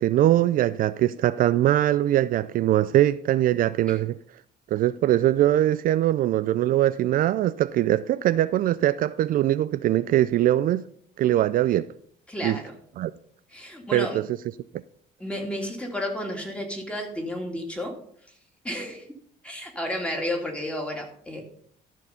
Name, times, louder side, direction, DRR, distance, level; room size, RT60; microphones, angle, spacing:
voice 1, 0.0-4.2 4.7-10.8 11.2-11.9 12.4-12.6 13.0-13.1 13.9-14.2, right 13 dB, 55° right, 0.4 m, -22 dB
voice 2, 12.3-12.7 13.5-14.2 15.2-18.0 18.3-18.4 18.6-19.1 19.4-21.4, left 1 dB, 5° left, 2.4 m, -32 dB
13.5 x 4.5 x 5.6 m
cardioid pair, 110°, 17 cm